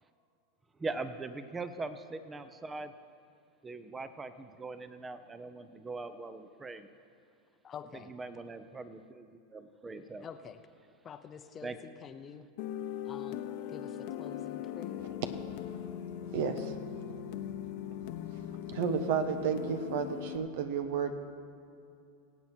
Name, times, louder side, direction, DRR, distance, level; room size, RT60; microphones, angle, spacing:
voice 1, 0.8-2.9 3.6-6.9 7.9-10.3 11.6-11.8, right 3 dB, 15° right, 11 dB, 0.8 m, -41 dB
voice 2, 7.6-8.1 10.2-10.6 11.0-12.5 13.1-13.4 13.7-15.0, left 7 dB, 30° left, 9 dB, 0.8 m, -47 dB
sound 1, 12.6-20.4, left 10 dB, 60° left, 0.9 m, -40 dB
voice 3, 16.3-16.8 18.7-21.1, right 7 dB, 70° right, 9 dB, 1.2 m, -32 dB
23.5 x 8.3 x 4.5 m, 2.6 s
hypercardioid pair, 115°, 0 cm